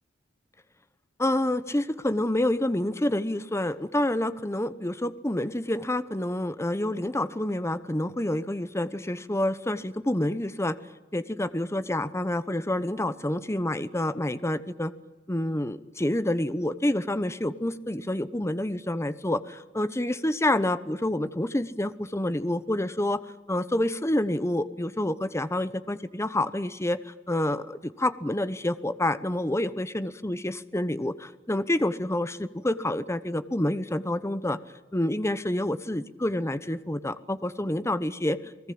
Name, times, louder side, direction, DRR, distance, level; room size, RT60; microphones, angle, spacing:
voice 1, 1.2-10.8 11.1-14.9 15.3-23.2 23.5-34.6 34.9-38.5, left 1 dB, 15° left, 13 dB, 1.0 m, -28 dB
29.5 x 19.5 x 8.7 m, 1.1 s
head